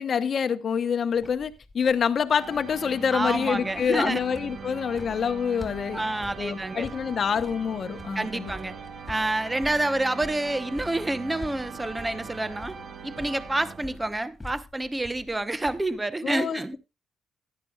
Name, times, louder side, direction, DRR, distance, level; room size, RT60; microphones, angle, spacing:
voice 1, 0.0-6.0 6.4-8.5 16.2-16.8, left 7 dB, 50° left, 1.0 m, -26 dB
sound 1, 1.1-16.0, left 2 dB, 15° left, 2.4 m, -46 dB
sound 2, 2.3-14.3, right 5 dB, 60° right, 1.2 m, -41 dB
voice 2, 3.1-4.2 5.9-6.9 8.1-8.7 9.1-12.8 13.0-16.8, right 2 dB, 15° right, 0.9 m, -28 dB
15.5 x 11.5 x 2.4 m
cardioid pair, 90°, 0 cm